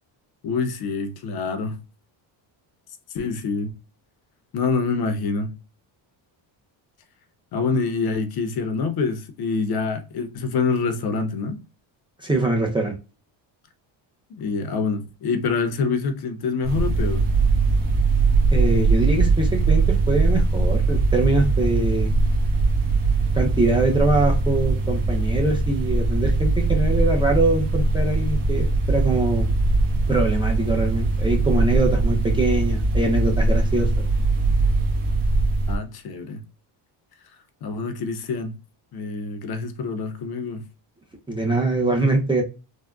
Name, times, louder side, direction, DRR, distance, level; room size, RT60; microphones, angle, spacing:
voice 1, 0.4-1.8 3.1-3.7 4.5-5.5 7.5-11.6 14.3-17.3 35.7-36.4 37.6-38.6 38.9-40.6, left 4 dB, 50° left, 0.6 m, -26 dB
voice 2, 12.2-12.9 18.5-22.1 23.3-29.5 30.1-34.1 41.3-42.4, right 2 dB, 10° right, 0.5 m, -23 dB
sound 1, 16.6-35.8, right 3 dB, 55° right, 1.3 m, -21 dB
3.5 x 2.1 x 2.3 m
cardioid pair, 135°, 50 cm